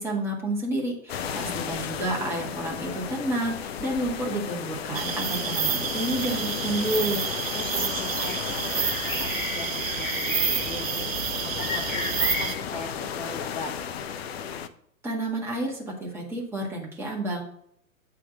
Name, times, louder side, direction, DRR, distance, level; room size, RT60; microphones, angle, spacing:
voice 1, 0.0-7.2 15.0-17.4, right 1 dB, 5° right, -3 dB, 1.8 m, -30 dB
sound 1, 1.1-14.7, left 8 dB, 45° left, 0.6 m, -34 dB
voice 2, 1.1-1.8 7.5-13.7, left 2 dB, 20° left, 1 dB, 1.4 m, -40 dB
sound 2, 4.9-12.6, right 8 dB, 70° right, 0.7 m, -29 dB
sound 3, 7.5-12.6, left 4 dB, 70° left, 1.2 m, -35 dB
8.3 x 3.8 x 6.1 m, 0.69 s
figure-of-eight pair, 105°, 42 cm